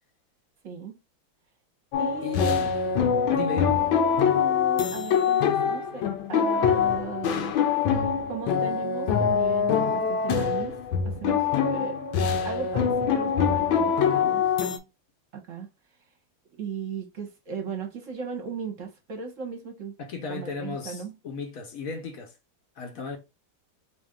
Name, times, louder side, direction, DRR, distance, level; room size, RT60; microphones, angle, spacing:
voice 1, 0.6-1.0 2.0-2.6 4.3-6.0 6.3-10.8 11.0-14.4 15.3-15.7 16.6-20.0 20.3-21.1, right 6 dB, 50° right, 1.1 m, -37 dB
sound 1, 1.9-14.8, left 7 dB, 85° left, 1.5 m, -24 dB
voice 2, 2.2-2.7 3.3-3.8 20.0-22.4 22.8-23.2, left 5 dB, 60° left, 0.9 m, -35 dB
4.3 x 2.6 x 3.6 m
omnidirectional pair, 2.1 m